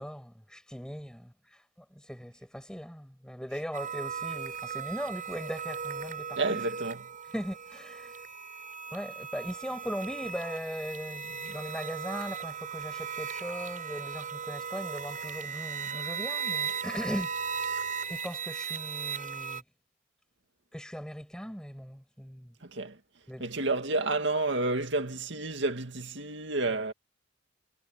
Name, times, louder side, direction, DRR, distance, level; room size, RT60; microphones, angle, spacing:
voice 1, 0.0-6.6 7.3-8.2 8.9-17.8 18.1-19.6 20.7-22.5 23.3-23.5, equal, 5° left, 7.3 m, -39 dB
sound 1, 3.7-19.6, right 6 dB, 45° right, 6.3 m, -37 dB
voice 2, 6.4-7.0 22.6-23.0 23.4-26.9, right 2 dB, 65° right, 2.2 m, -30 dB
head